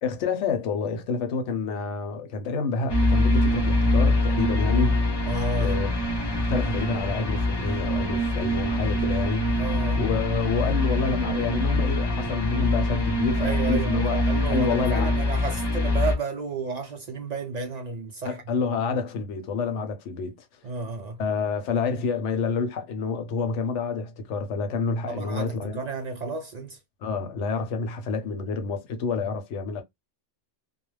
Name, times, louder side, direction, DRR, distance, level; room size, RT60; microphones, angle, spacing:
voice 1, 0.0-5.0 5.6-6.0 6.2-9.6 9.9-14.2 14.5-15.1 18.2-20.4 21.2-25.8 27.0-29.8, left 4 dB, 85° left, 1.0 m, -28 dB
sound 1, 2.9-16.2, left 1 dB, 35° left, 0.4 m, -24 dB
voice 2, 5.3-5.8 9.6-10.0 13.4-18.4 20.6-21.2 25.1-26.8, right 4 dB, 65° right, 0.4 m, -32 dB
2.3 x 2.0 x 3.1 m
omnidirectional pair, 1.2 m